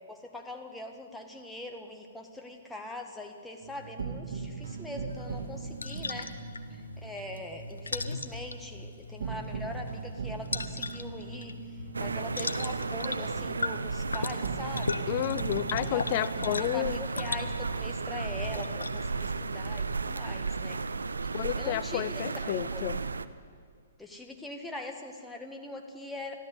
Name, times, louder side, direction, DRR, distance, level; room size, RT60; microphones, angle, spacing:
voice 1, 0.1-6.3 6.7-15.1 15.7-20.8 21.6-22.2 22.7-23.1 24.0-26.3, left 1 dB, 5° left, 2 dB, 1.7 m, -42 dB
sound 1, 3.6-19.3, right 5 dB, 60° right, 2.6 m, -41 dB
sound 2, 5.1-19.9, left 3 dB, 85° left, 0.8 m, -39 dB
sound 3, 11.9-23.3, right 4 dB, 85° right, 0.6 m, -34 dB
voice 2, 15.1-17.0 21.3-23.0, left 15 dB, 45° left, 17 dB, 0.4 m, -31 dB
14.5 x 12.5 x 8.1 m, 2.2 s
hypercardioid pair, 125°, 0 cm